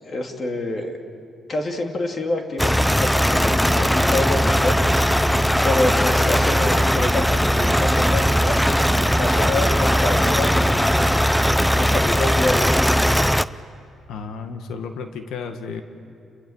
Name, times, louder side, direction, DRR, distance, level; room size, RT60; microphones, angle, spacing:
voice 1, 0.1-1.0 1.5-5.0 5.6-10.9 11.7-12.8, left 2 dB, 40° left, 3 dB, 2.6 m, -27 dB
sound 1, 2.6-13.4, equal, ahead, 0.5 m, -19 dB
voice 2, 14.1-15.8, left 5 dB, 90° left, 7 dB, 1.8 m, -32 dB
29.0 x 22.0 x 7.3 m, 2.5 s
cardioid pair, 110°, 0 cm